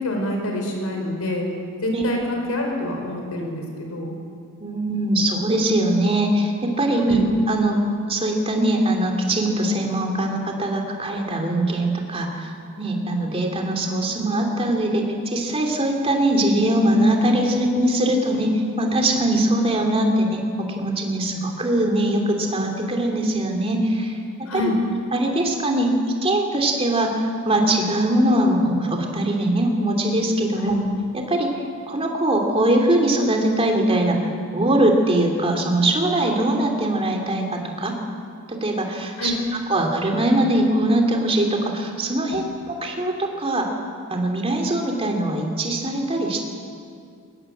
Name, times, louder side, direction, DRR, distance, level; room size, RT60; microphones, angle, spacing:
voice 1, 0.0-1.4 1.8-3.6 3.9-4.2 7.0-7.2 24.5-24.8 30.6-30.8 39.2-39.3 42.3-42.4, left 1 dB, 80° left, 2 dB, 5.1 m, -26 dB
voice 2, 4.6-7.8 8.1-24.2 24.5-24.7 25.1-25.9 26.2-30.8 31.1-31.5 31.9-37.9 38.5-39.3 39.7-43.7 44.1-46.4, right 1 dB, 25° right, 1 dB, 3.0 m, -21 dB
22.0 x 19.5 x 8.0 m, 2.3 s
head